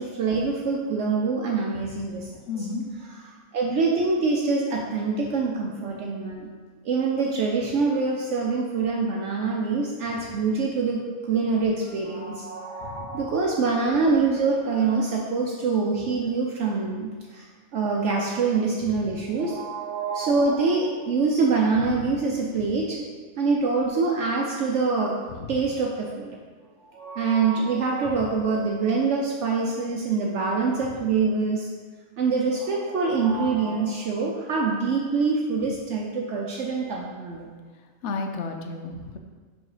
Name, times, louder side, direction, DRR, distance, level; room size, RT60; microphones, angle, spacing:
voice 1, 0.0-2.3 2.6-2.7 3.5-6.5 6.8-17.5 17.7-23.1 23.4-25.1 25.5-26.4 26.9-31.7 32.2-37.5, right 4 dB, 70° right, -1 dB, 1.0 m, -25 dB
voice 2, 2.5-2.8 12.8-13.2 25.3-25.6 38.0-39.2, left 4 dB, 65° left, 5 dB, 1.0 m, -32 dB
6.2 x 4.6 x 4.9 m, 1.5 s
omnidirectional pair, 1.3 m